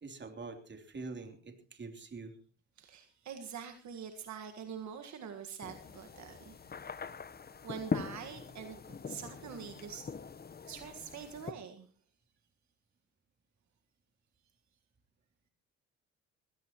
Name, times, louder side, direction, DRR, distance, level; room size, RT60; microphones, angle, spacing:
voice 1, 0.0-2.3, right 3 dB, 35° right, 6 dB, 3.2 m, -45 dB
voice 2, 2.8-6.6 7.6-10.1 10.7-11.9, right 7 dB, 65° right, 6 dB, 1.7 m, -45 dB
sound 1, 5.6-11.5, left 5 dB, 30° left, 1.0 m, -42 dB
21.0 x 17.0 x 3.0 m, 0.37 s
cardioid pair, 90°, 30 cm